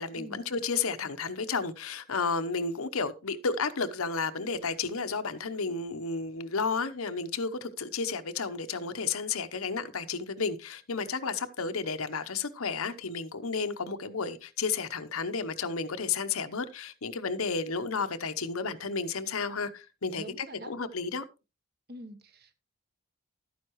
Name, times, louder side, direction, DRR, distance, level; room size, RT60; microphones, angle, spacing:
voice 1, 0.0-21.2, left 4 dB, 80° left, 0.9 m, -32 dB
voice 2, 20.2-20.7 21.9-22.5, right 1 dB, 45° right, 1.1 m, -45 dB
12.0 x 9.4 x 3.1 m
head